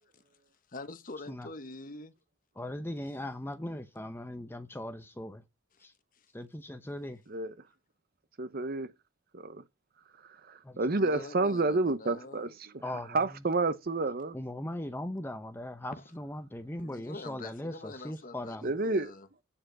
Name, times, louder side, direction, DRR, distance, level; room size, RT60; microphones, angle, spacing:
voice 1, 0.7-2.1 6.1-6.3 11.0-12.5 15.9-16.0 16.8-19.3, left 2 dB, 40° left, 1.1 m, -45 dB
voice 2, 2.6-5.4 5.8-5.9 6.3-7.2 10.6-10.8 12.8-13.2 14.3-18.7, left 1 dB, 10° left, 0.7 m, -39 dB
voice 3, 8.4-8.9 9.3-9.6 10.5-12.7 13.1-14.4 18.6-19.1, right 3 dB, 45° right, 0.8 m, -29 dB
8.6 x 5.0 x 7.6 m
head